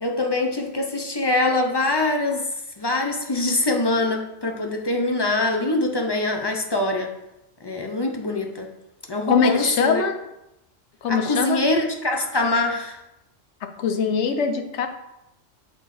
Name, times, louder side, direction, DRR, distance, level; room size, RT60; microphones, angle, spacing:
voice 1, 0.0-2.5 2.8-7.1 7.6-8.7 9.1-10.0 11.1-13.0, left 2 dB, 35° left, 2 dB, 0.4 m, -23 dB
voice 2, 9.3-10.2 11.0-11.6 13.8-14.9, left 5 dB, 70° left, 7 dB, 1.0 m, -22 dB
6.0 x 4.2 x 4.1 m, 0.89 s
omnidirectional pair, 1.3 m